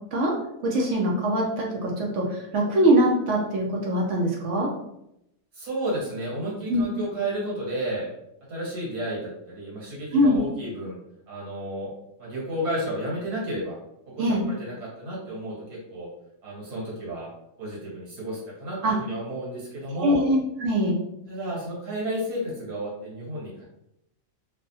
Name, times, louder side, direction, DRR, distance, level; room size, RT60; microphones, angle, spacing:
voice 1, 0.6-4.7 6.7-6.8 10.1-10.4 14.2-14.4 18.8-19.0 20.0-20.9, equal, 65° right, -1 dB, 0.8 m, -22 dB
voice 2, 5.5-8.1 8.5-11.0 11.3-11.9 12.2-13.8 14.1-16.1 16.4-17.3 17.6-20.3 21.3-23.6, right 1 dB, 85° right, -6 dB, 1.9 m, -32 dB
3.3 x 2.1 x 2.6 m, 0.82 s
omnidirectional pair, 1.6 m